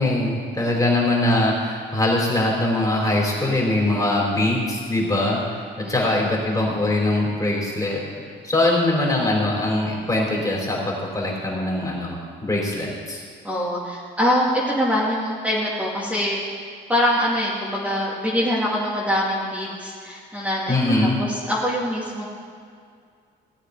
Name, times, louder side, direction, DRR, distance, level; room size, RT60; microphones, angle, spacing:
voice 1, 0.0-8.0 8.4-13.2 20.7-21.2, left 1 dB, 15° left, -3 dB, 4.0 m, -22 dB
voice 2, 13.4-16.4 16.9-20.8 21.2-22.3, equal, 5° right, -7 dB, 2.6 m, -24 dB
17.0 x 9.0 x 5.0 m, 2.1 s
cardioid pair, 90°, 20 cm